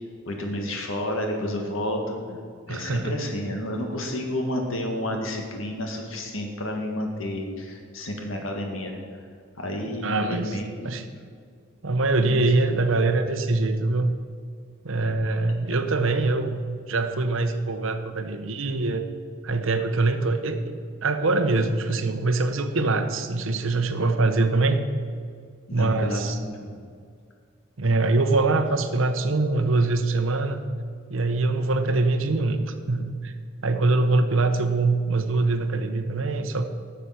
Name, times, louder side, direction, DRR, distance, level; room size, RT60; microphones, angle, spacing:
voice 1, 0.3-2.2 2.7-9.0 9.6-10.9 12.2-12.4 15.0-15.1 25.7-26.8, left 1 dB, 70° left, 2 dB, 1.8 m, -30 dB
voice 2, 2.7-3.2 10.0-10.6 10.8-11.1 11.8-14.1 14.8-19.0 19.4-20.6 21.0-24.8 25.7-26.4 27.8-30.6 31.1-33.3 33.6-36.6, right 3 dB, 65° right, 8 dB, 0.9 m, -23 dB
12.5 x 6.8 x 5.8 m, 2.1 s
head